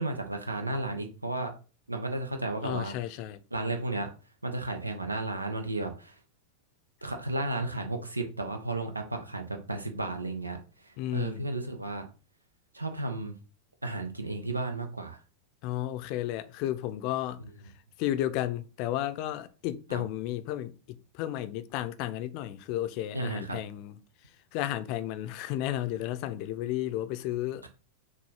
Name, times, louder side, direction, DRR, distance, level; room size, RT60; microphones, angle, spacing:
voice 1, 0.0-1.5 1.9-3.0 3.5-4.1 4.4-6.1 7.0-12.1 12.7-13.3 13.8-15.2 19.9-20.0 23.1-23.6 27.6-27.7, right 2 dB, 85° right, 1.0 m, -33 dB
voice 2, 2.6-3.4 11.0-11.5 15.6-17.4 18.0-24.0 24.5-27.7, left 13 dB, 45° left, 0.6 m, -33 dB
6.5 x 2.7 x 5.5 m
figure-of-eight pair, 90°, 0 cm